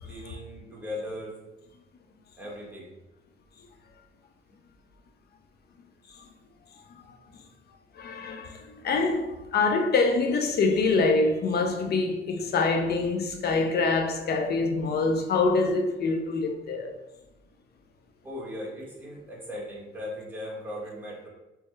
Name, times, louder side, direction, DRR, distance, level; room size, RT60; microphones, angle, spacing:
voice 1, 0.0-1.4 2.4-2.9 18.2-21.3, left 1 dB, 10° right, 1.5 m, -38 dB
voice 2, 7.9-16.9, left 3 dB, 55° left, 0.6 m, -25 dB
3.4 x 3.2 x 3.2 m
cardioid pair, 90°, 20 cm